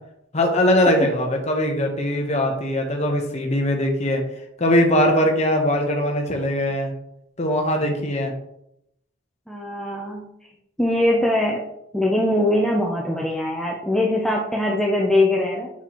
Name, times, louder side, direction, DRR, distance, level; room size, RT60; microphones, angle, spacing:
voice 1, 0.3-4.2 4.6-6.9 7.4-8.3, left 1 dB, 30° left, 3 dB, 0.9 m, -21 dB
voice 2, 9.5-10.3 10.8-11.6 11.9-15.7, left 1 dB, 5° left, -3 dB, 0.6 m, -21 dB
7.1 x 4.6 x 2.9 m, 0.80 s
head